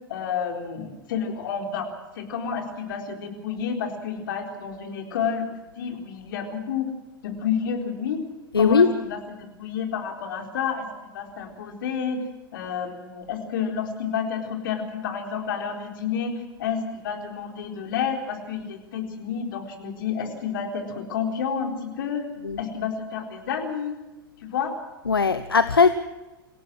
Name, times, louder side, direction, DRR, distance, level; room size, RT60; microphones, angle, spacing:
voice 1, 0.1-6.9 7.2-8.2 8.6-10.9 11.1-12.2 12.5-16.3 16.6-22.2 22.6-24.0 24.5-24.7, left 7 dB, 65° left, 3 dB, 4.2 m, -30 dB
voice 2, 8.5-8.9 22.4-22.6 25.0-25.9, left 5 dB, 85° left, 13 dB, 0.9 m, -19 dB
26.5 x 17.5 x 6.3 m, 1.1 s
figure-of-eight pair, 90°, 12 cm